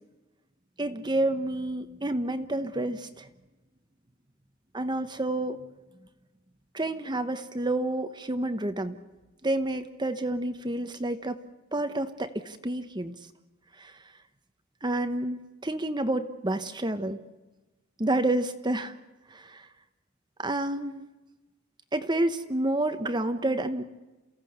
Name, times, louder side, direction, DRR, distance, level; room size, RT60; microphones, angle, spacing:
voice 1, 0.8-3.3 4.7-5.6 6.7-9.0 9.4-11.4 11.7-13.1 13.8-14.0 14.8-17.2 18.0-18.9 19.3-19.7 20.4-21.0 21.9-23.8, right 1 dB, 20° right, 9 dB, 1.1 m, -29 dB
29.0 x 16.5 x 8.1 m, 1.1 s
head